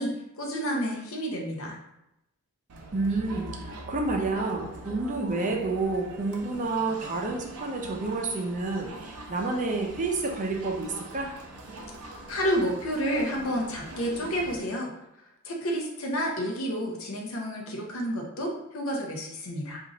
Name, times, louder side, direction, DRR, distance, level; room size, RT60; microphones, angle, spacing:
voice 1, 0.0-1.8 12.3-14.9 15.4-19.8, equal, 65° left, 0 dB, 0.7 m, -30 dB
Crowd, 2.7-14.6, right 1 dB, 85° right, 0.6 m, -43 dB
voice 2, 2.9-11.3, right 3 dB, 35° right, 1 dB, 0.5 m, -29 dB
2.8 x 2.4 x 3.9 m, 0.86 s
head